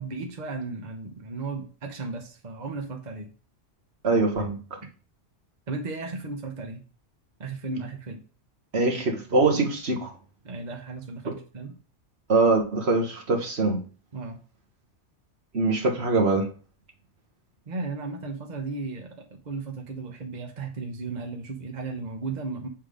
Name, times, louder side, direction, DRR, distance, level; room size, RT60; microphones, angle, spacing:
voice 1, 0.0-3.3 5.7-6.8 7.4-8.2 10.4-11.7 14.1-14.4 17.7-22.7, right 3 dB, 40° right, 1.0 m, -35 dB
voice 2, 4.0-4.8 8.7-10.1 11.3-11.4 12.3-13.8 15.5-16.5, right 3 dB, 60° right, 1.6 m, -23 dB
7.4 x 3.7 x 5.0 m
omnidirectional pair, 1.2 m